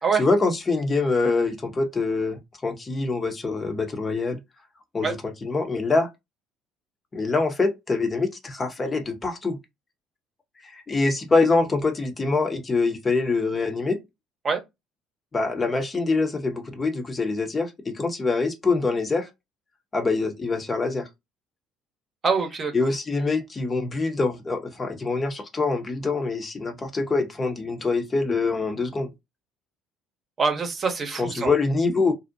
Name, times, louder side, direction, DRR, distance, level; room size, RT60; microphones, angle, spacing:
voice 1, 0.2-4.4 4.9-5.2 5.4-6.1 7.1-9.6 10.7-14.0 15.3-19.3 19.9-21.1 22.7-29.1 31.2-32.1, left 3 dB, 30° left, 0.7 m, -24 dB
voice 2, 22.2-22.7 30.4-31.5, right 5 dB, 40° right, 0.8 m, -24 dB
2.5 x 2.0 x 2.6 m
hypercardioid pair, 55°, 0 cm